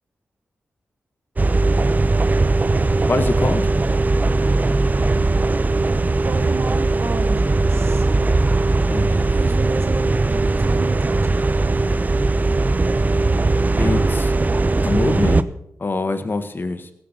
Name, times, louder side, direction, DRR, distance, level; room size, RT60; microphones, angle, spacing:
sound 1, 1.4-15.4, right 3 dB, 35° right, 0.8 m, -19 dB
voice 1, 3.1-3.7 8.9-9.3 13.8-14.3 14.8-15.5 15.8-16.9, left 3 dB, 45° left, 9 dB, 1.7 m, -24 dB
voice 2, 6.2-8.1 9.3-11.5, right 4 dB, 55° right, 6 dB, 1.7 m, -32 dB
17.0 x 7.8 x 6.9 m, 0.76 s
cardioid pair, 50°, 5 cm